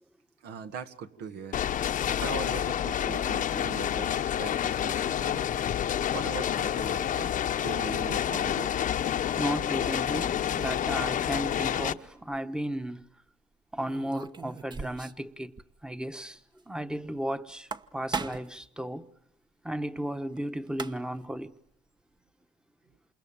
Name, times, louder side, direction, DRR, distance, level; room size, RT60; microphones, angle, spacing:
voice 1, 0.4-1.6 2.2-5.6 6.1-7.4 7.6-8.9, right 6 dB, 75° right, 1.9 m, -40 dB
sound 1, 1.5-11.9, left 10 dB, 50° left, 1.0 m, -29 dB
voice 2, 9.4-13.1 13.7-15.5 15.8-16.4 16.7-19.1 19.6-21.5, right 1 dB, 5° right, 1.2 m, -34 dB
sound 2, 12.1-12.4 13.9-15.3 15.6-15.7 16.0-16.1 17.5-18.6 20.4-20.5 20.7-21.3, right 5 dB, 25° right, 1.0 m, -37 dB
28.0 x 27.5 x 7.4 m
cardioid pair, 110°, 17 cm